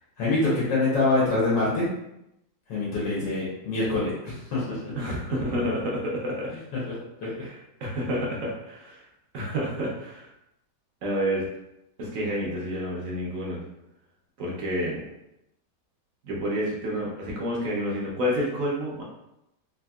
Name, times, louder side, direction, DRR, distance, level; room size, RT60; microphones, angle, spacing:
voice 1, 0.2-1.9 2.7-4.9 6.9-7.0 7.2-7.4, left 2 dB, 80° left, -7 dB, 1.6 m, -25 dB
voice 2, 5.0-6.5 7.4-9.0 9.3-10.3 11.0-11.4 12.0-13.6 14.4-15.0 16.2-19.0, equal, 60° right, -3 dB, 1.0 m, -29 dB
3.6 x 2.7 x 2.3 m, 0.85 s
omnidirectional pair, 1.8 m